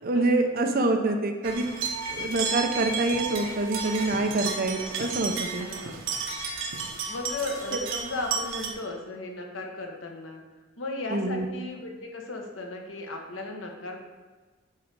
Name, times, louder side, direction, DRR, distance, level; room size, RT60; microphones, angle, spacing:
voice 1, 0.0-1.7 2.1-5.7 11.1-11.5, right 2 dB, 50° right, 4 dB, 0.8 m, -26 dB
sound 1, 1.4-8.7, right 5 dB, 85° right, 1.0 m, -32 dB
voice 2, 5.6-6.1 7.1-10.4 10.8-14.0, left 2 dB, 85° left, 1 dB, 1.2 m, -36 dB
8.7 x 3.8 x 4.7 m, 1.3 s
head